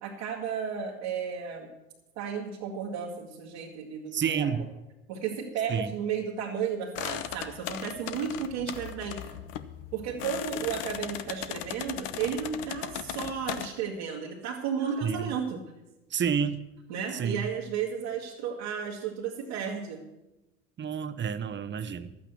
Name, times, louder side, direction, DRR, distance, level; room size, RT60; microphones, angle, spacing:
voice 1, 0.0-1.7 2.2-4.7 5.1-9.4 9.9-15.6 16.9-20.0, right 7 dB, 80° right, -4 dB, 1.9 m, -33 dB
voice 2, 4.1-4.7 5.7-5.9 15.0-15.3 16.1-16.7 17.1-17.5 20.8-22.2, right 7 dB, 35° right, 12 dB, 1.0 m, -29 dB
sound 1, 7.0-13.7, left 11 dB, 70° left, 0.9 m, -37 dB
12.0 x 8.8 x 7.0 m, 0.98 s
hypercardioid pair, 70°, 31 cm